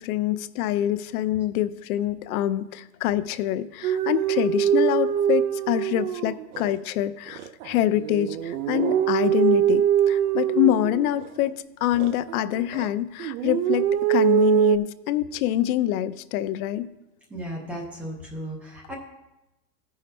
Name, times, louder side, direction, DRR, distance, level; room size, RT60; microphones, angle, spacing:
voice 1, 0.0-16.9, left 13 dB, 65° left, 14 dB, 0.5 m, -25 dB
sound 1, 3.8-6.7 7.3-11.5 11.9-12.9 13.2-14.8, right 11 dB, 70° right, 0.6 m, -23 dB
voice 2, 17.3-18.9, right 1 dB, 5° right, -1 dB, 0.3 m, -35 dB
14.5 x 5.6 x 3.3 m, 0.98 s
supercardioid pair, 150°, 48 cm